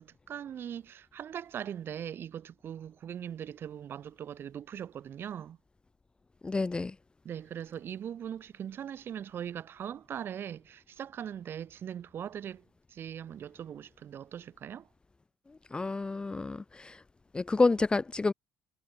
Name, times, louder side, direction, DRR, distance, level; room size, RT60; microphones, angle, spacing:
voice 1, 0.0-5.6 7.2-14.9, right 9 dB, 45° right, 5.2 m, -40 dB
voice 2, 6.4-6.9 15.7-17.0 17.3-18.3, left 3 dB, 20° left, 0.6 m, -29 dB
hypercardioid pair, 60°, 5 cm